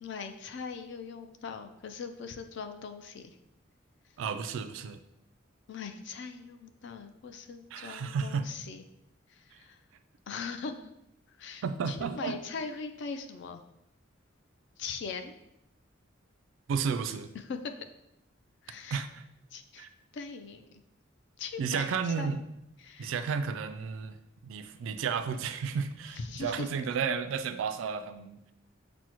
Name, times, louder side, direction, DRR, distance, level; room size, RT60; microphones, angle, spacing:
voice 1, 0.0-3.4 5.7-8.8 9.3-9.8 10.3-10.7 11.3-13.6 14.8-15.3 17.3-17.8 18.6-19.0 19.5-19.9 20.1-20.8 21.4-22.3 22.8-23.1 26.1-26.7, left 5 dB, 60° left, 7 dB, 0.3 m, -40 dB
voice 2, 4.2-5.0 7.7-8.5 11.6-12.4 16.7-17.3 18.9-19.2 19.8-19.9 21.6-22.4 23.0-24.2 24.4-28.5, right 6 dB, 75° right, 11 dB, 0.3 m, -32 dB
6.0 x 2.1 x 2.9 m, 0.84 s
head